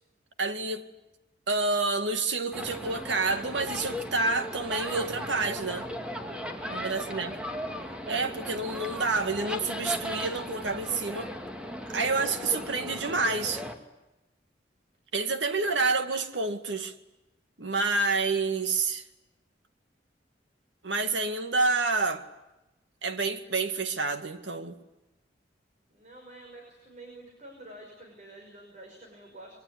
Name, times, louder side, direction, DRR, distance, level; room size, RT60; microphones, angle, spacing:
voice 1, 0.4-0.8 1.5-5.9 6.7-7.3 8.1-11.3 11.9-13.6 15.1-16.9 17.6-19.0 20.8-22.2 23.0-24.8, right 3 dB, 85° right, 2.1 m, -28 dB
sound 1, 2.5-13.7, equal, 5° right, 2.3 m, -37 dB
voice 2, 6.6-7.3 15.6-16.0 25.9-29.6, right 1 dB, 40° right, 5.6 m, -48 dB
25.5 x 23.5 x 9.9 m
head